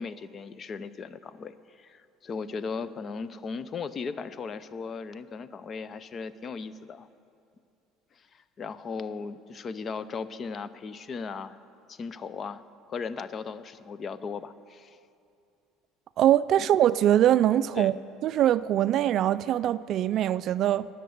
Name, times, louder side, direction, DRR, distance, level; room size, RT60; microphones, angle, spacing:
voice 1, 0.0-7.1 8.2-11.6 11.9-12.6 12.9-15.0 17.7-17.9, left 5 dB, 35° left, 0.5 m, -37 dB
voice 2, 16.2-17.9 18.2-20.9, right 11 dB, 55° right, 0.3 m, -22 dB
20.0 x 6.6 x 7.9 m
cardioid pair, 115°, 0 cm